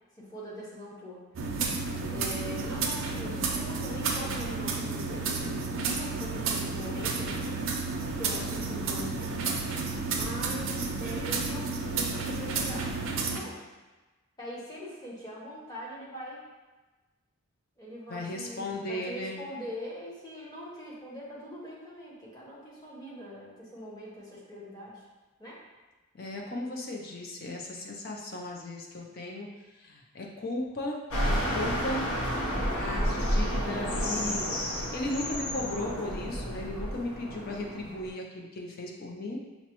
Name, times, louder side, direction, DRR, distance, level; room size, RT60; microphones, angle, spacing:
voice 1, 0.2-1.2 2.1-7.4 8.1-12.9 13.3-13.6 14.4-16.4 17.8-25.0 25.4-25.6, equal, 15° left, -6 dB, 0.8 m, -42 dB
sound 1, 1.3-13.4, right 4 dB, 60° right, 0.4 m, -31 dB
voice 2, 18.1-19.4 26.1-31.0 31.2-32.1 32.6-39.4, left 1 dB, 45° left, -1 dB, 0.5 m, -36 dB
sound 2, 31.1-38.1, equal, 85° left, 0.7 m, -31 dB
5.6 x 2.0 x 2.9 m, 1.2 s
head